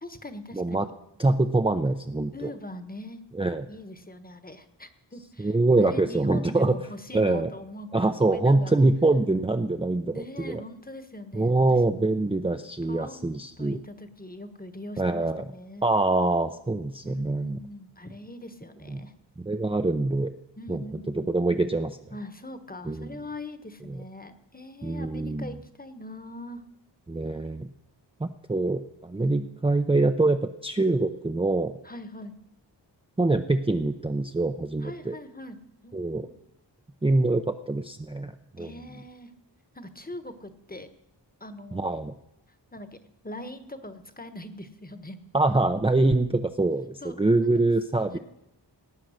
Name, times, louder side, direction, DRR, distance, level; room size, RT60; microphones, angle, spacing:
voice 1, 0.0-0.9 2.3-3.2 3.7-8.8 10.0-12.1 12.8-15.8 17.0-19.1 20.5-21.3 22.1-26.6 29.2-29.5 31.8-32.4 34.8-35.6 35.8-36.4 38.6-39.3 39.7-40.9 41.4-41.9 42.7-45.2 47.0-47.7 48.0-48.2, left 1 dB, 20° left, 10 dB, 1.2 m, -42 dB
voice 2, 0.5-0.9 1.2-2.5 3.3-3.6 5.4-6.8 7.1-7.5 7.9-10.6 11.3-13.8 15.0-15.4 15.8-17.6 18.9-19.0 19.4-20.3 20.7-20.8 21.1-22.0 22.9-23.1 23.9-24.0 24.8-25.5 27.1-27.7 28.2-31.7 33.2-35.2 35.9-36.3 37.0-38.3 38.6-38.7 41.7-42.1 45.3-48.2, right 2 dB, 15° right, 7 dB, 0.6 m, -24 dB
18.0 x 8.6 x 6.4 m, 0.86 s
wide cardioid pair, 65°, 43 cm